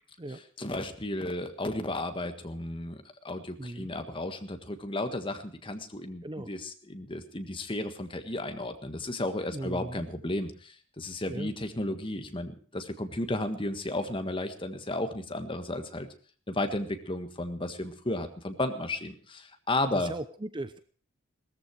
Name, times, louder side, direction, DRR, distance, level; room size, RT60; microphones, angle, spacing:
voice 1, 0.6-16.1 16.5-20.1, left 1 dB, 25° left, 7 dB, 1.6 m, -33 dB
voice 2, 3.6-3.9 6.2-6.5 9.5-10.1 11.3-11.5 19.9-20.8, right 1 dB, 20° right, 12 dB, 0.7 m, -38 dB
18.5 x 14.0 x 4.7 m, 0.43 s
head